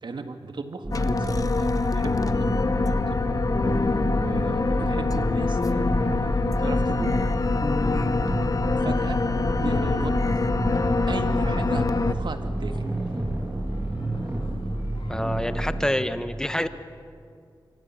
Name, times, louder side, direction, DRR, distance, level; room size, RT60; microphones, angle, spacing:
voice 1, 0.0-3.4 4.1-7.2 8.8-9.2 9.6-10.5 11.1-12.8, right 3 dB, 65° right, 7 dB, 1.9 m, -36 dB
sound 1, 0.8-15.9, right 2 dB, 25° right, 2.9 m, -30 dB
sound 2, 0.9-12.1, left 3 dB, 45° left, 0.9 m, -25 dB
sound 3, 3.7-15.5, left 3 dB, 90° left, 3.6 m, -48 dB
voice 2, 15.1-16.7, left 1 dB, 10° left, 10 dB, 1.3 m, -27 dB
25.5 x 25.0 x 7.4 m, 2.3 s
wide cardioid pair, 70°, 9 cm